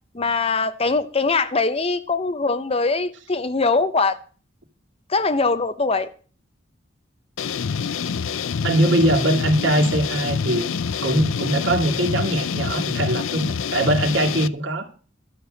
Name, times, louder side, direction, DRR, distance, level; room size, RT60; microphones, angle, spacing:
voice 1, 0.1-4.2 5.1-6.1, left 3 dB, 30° left, 0.6 m, -22 dB
sound 1, 7.4-14.5, left 6 dB, 75° left, 0.5 m, -26 dB
voice 2, 8.6-10.6 11.0-14.9, right 1 dB, 65° right, 2.3 m, -21 dB
12.5 x 6.8 x 7.9 m
head